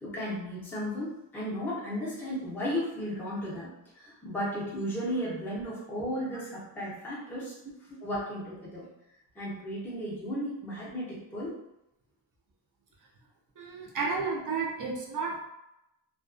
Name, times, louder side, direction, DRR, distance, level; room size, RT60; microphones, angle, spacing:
voice 1, 0.0-7.6 8.0-8.9 9.3-11.6 14.0-14.2, equal, 5° left, -9 dB, 0.6 m, -35 dB
voice 2, 13.6-15.4, right 4 dB, 45° right, -1 dB, 0.5 m, -32 dB
2.4 x 2.2 x 2.4 m, 0.87 s
wide cardioid pair, 170°, 48 cm